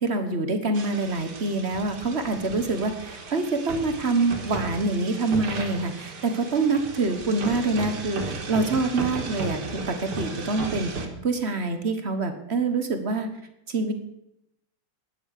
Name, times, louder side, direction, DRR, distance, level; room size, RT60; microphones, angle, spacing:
voice 1, 0.0-13.3 13.7-13.9, right 3 dB, 40° right, 7 dB, 1.1 m, -26 dB
sound 1, 0.7-11.1, right 3 dB, 70° right, 2.6 m, -35 dB
12.5 x 9.9 x 6.6 m, 0.81 s
omnidirectional pair, 2.4 m